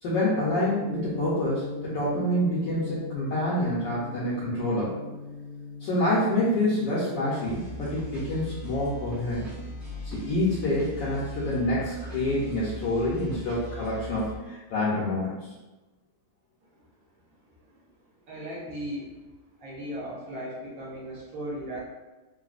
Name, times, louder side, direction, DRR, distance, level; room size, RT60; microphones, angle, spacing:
voice 1, 0.0-4.9 5.8-9.4 10.1-15.3, left 1 dB, 70° left, -8 dB, 1.2 m, -27 dB
Gong, 0.8-11.5, left 3 dB, 80° right, 1.4 m, -40 dB
sound 1, 7.4-14.4, right 1 dB, 25° right, 0.3 m, -39 dB
voice 2, 18.3-19.1 19.6-21.8, equal, 55° right, -6 dB, 1.0 m, -36 dB
3.9 x 2.1 x 2.4 m, 1.1 s
omnidirectional pair, 2.4 m